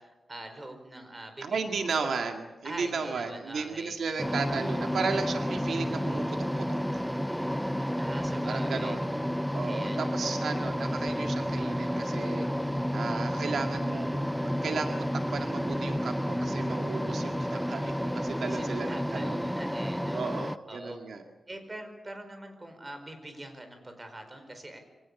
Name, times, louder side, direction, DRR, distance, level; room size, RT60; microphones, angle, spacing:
voice 1, 0.0-1.9 2.6-3.9 8.0-9.0 9.6-10.0 18.4-20.2 20.7-21.0 21.5-24.8, right 1 dB, 25° right, 7 dB, 4.7 m, -44 dB
voice 2, 1.4-7.0 8.5-9.2 9.4-12.5 12.9-14.2 14.6-19.5 20.1-21.2, right 4 dB, 85° right, 4 dB, 2.1 m, -34 dB
sound 1, 4.2-20.6, equal, ahead, 0.7 m, -31 dB
25.0 x 17.5 x 8.3 m, 1.1 s
wide cardioid pair, 110°, 0 cm